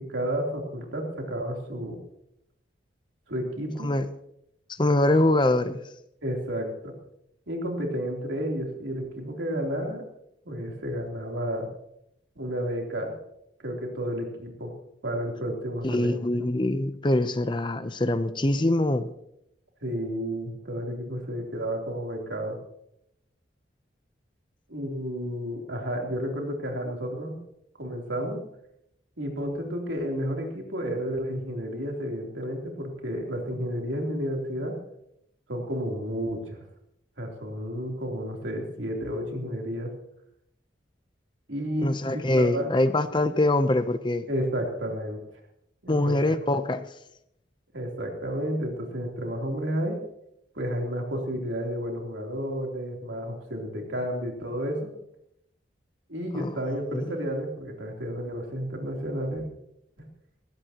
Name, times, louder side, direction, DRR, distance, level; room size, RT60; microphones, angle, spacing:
voice 1, 0.0-2.0 3.3-3.9 6.2-7.0 7.5-10.0 10.4-11.7 12.3-13.1 13.6-14.7 15.0-16.1 19.8-22.6 24.7-27.4 27.8-28.4 29.2-34.8 35.5-36.6 37.2-39.9 41.5-42.7 44.3-45.2 45.8-46.1 47.7-50.0 50.5-54.9 56.1-59.5 60.0-60.1, equal, 85° right, 1 dB, 3.4 m, -31 dB
voice 2, 4.7-5.8 15.8-19.1 41.8-44.3 45.9-46.8 56.3-56.5 56.9-57.1, left 1 dB, 25° left, 11 dB, 0.7 m, -24 dB
20.0 x 16.5 x 3.0 m, 0.77 s
head